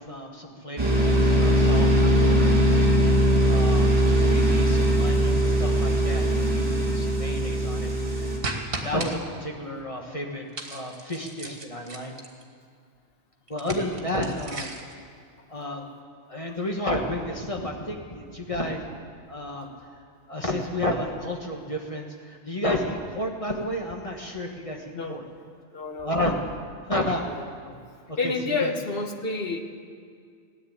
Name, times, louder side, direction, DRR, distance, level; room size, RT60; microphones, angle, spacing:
voice 1, 0.0-2.9 3.3-7.9 8.2-8.4 8.8-10.4 10.7-12.1 13.5-14.7 15.5-15.9 16.3-18.8 19.3-19.7 20.3-25.2 26.0-26.3 26.9-27.3 27.6-27.8 28.1-28.8, left 1 dB, 30° left, 1 dB, 1.4 m, -31 dB
sound 1, 0.8-8.4, equal, 20° right, 3.4 m, -20 dB
sound 2, 8.4-9.1 10.5-12.4 13.5-14.9, right 2 dB, 55° right, 1.8 m, -35 dB
voice 2, 25.7-26.2 27.2-27.4 28.2-29.6, left 3 dB, 55° left, 4 dB, 1.4 m, -29 dB
17.0 x 9.8 x 8.7 m, 2.2 s
omnidirectional pair, 1.2 m